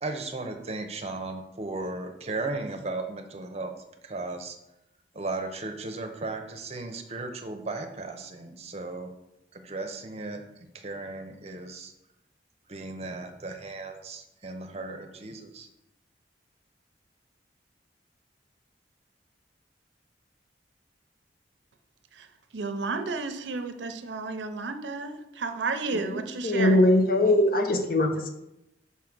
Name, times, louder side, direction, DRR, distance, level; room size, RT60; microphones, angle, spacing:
voice 1, 0.0-3.7 4.0-4.6 5.1-9.1 9.5-10.4 10.8-11.9 12.7-15.7, right 3 dB, 35° right, 5 dB, 0.7 m, -36 dB
voice 2, 22.5-26.8, right 4 dB, 85° right, 8 dB, 0.6 m, -32 dB
voice 3, 26.0-28.3, left 1 dB, 55° left, 5 dB, 0.8 m, -22 dB
5.8 x 3.7 x 6.0 m, 0.88 s
head